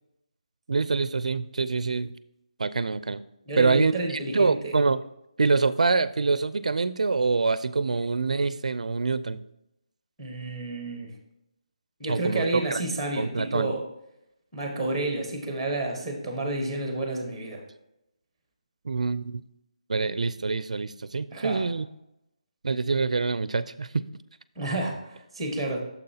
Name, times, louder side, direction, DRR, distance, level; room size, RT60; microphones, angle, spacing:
voice 1, 0.7-2.2 2.6-3.2 3.6-5.0 5.4-9.4 12.1-12.8 13.2-13.7 18.8-19.4 19.9-21.9 22.6-24.0, right 4 dB, 75° right, 16 dB, 0.4 m, -25 dB
voice 2, 3.5-4.8 10.2-11.1 12.0-13.8 14.5-17.6 21.3-21.6 24.6-25.8, right 2 dB, ahead, 3 dB, 1.1 m, -30 dB
9.4 x 7.1 x 2.8 m, 0.85 s
hypercardioid pair, 175°, 4 cm